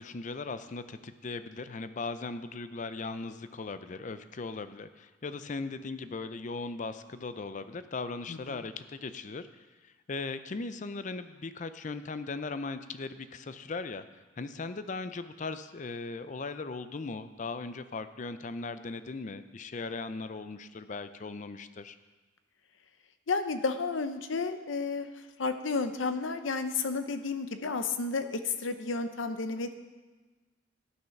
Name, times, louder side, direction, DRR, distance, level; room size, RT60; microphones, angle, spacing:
voice 1, 0.0-14.0 14.4-22.0, left 3 dB, 40° left, 11 dB, 0.5 m, -38 dB
voice 2, 8.3-8.6 23.3-25.1 25.4-29.7, left 4 dB, 85° left, 9 dB, 0.7 m, -32 dB
12.5 x 6.3 x 5.8 m, 1.3 s
head